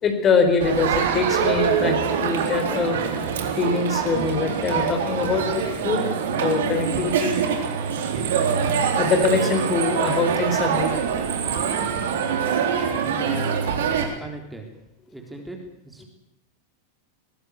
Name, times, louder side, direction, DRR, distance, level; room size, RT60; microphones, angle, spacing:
voice 1, 0.0-3.0 3.6-7.4 8.9-10.9 12.8-12.9, left 4 dB, 25° left, 6 dB, 4.5 m, -23 dB
Crowd, 0.6-14.0, right 7 dB, 60° right, 3.8 m, -24 dB
voice 2, 13.0-14.7 15.1-16.1, right 1 dB, 5° right, 2 dB, 3.9 m, -38 dB
22.0 x 19.0 x 8.4 m, 0.84 s
figure-of-eight pair, 90°, 0 cm